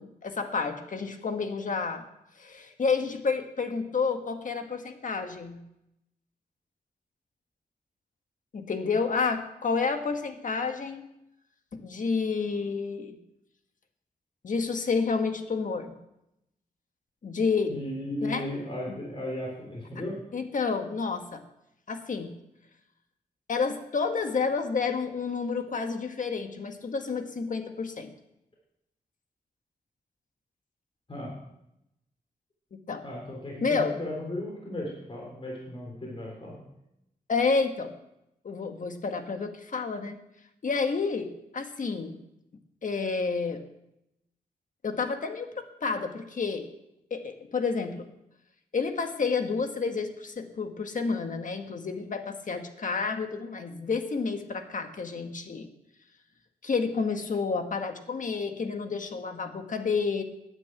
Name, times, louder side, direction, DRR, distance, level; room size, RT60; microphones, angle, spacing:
voice 1, 0.0-2.0 2.4-5.6 8.5-11.1 11.7-13.2 14.4-15.9 17.2-17.8 18.2-18.5 18.9-19.0 20.3-21.4 21.9-22.3 23.5-28.1 32.7-33.0 33.6-34.0 37.3-37.9 38.4-40.2 40.6-42.1 42.8-43.6 44.8-46.7 47.1-48.1 48.7-55.7 56.6-60.2, left 4 dB, 55° left, 6 dB, 1.5 m, -30 dB
voice 2, 17.7-20.2 31.1-31.3 33.0-36.5, left 1 dB, 35° left, -3 dB, 3.6 m, -36 dB
9.9 x 7.9 x 8.8 m, 0.85 s
cardioid pair, 80°, 16 cm